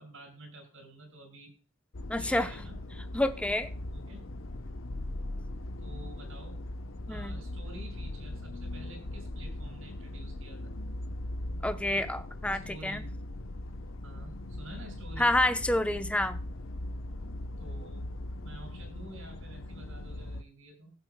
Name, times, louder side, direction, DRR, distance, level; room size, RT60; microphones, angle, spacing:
voice 1, 0.0-1.5 2.2-2.8 3.9-4.3 5.8-6.6 7.1-10.7 11.9-12.2 12.6-13.2 14.0-15.3 17.6-18.1 18.4-20.9, right 2 dB, 75° right, 5.2 m, -49 dB
sound 1, 1.9-20.4, left 1 dB, 70° left, 0.8 m, -39 dB
voice 2, 2.1-2.5 3.1-3.7 7.1-7.3 11.6-13.0 15.2-16.4, left 1 dB, 5° left, 0.7 m, -28 dB
19.5 x 7.5 x 2.2 m
head